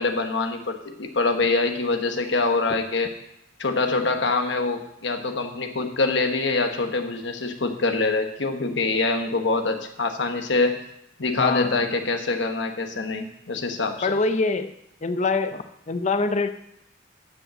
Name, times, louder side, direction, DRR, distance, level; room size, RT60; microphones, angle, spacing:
voice 1, 0.0-3.1 3.6-10.8 11.2-14.1, left 3 dB, 65° left, 5 dB, 1.2 m, -24 dB
voice 2, 11.4-11.8 14.0-14.7 15.0-16.5, left 3 dB, 35° left, 9 dB, 0.6 m, -24 dB
12.5 x 5.4 x 7.5 m, 0.78 s
head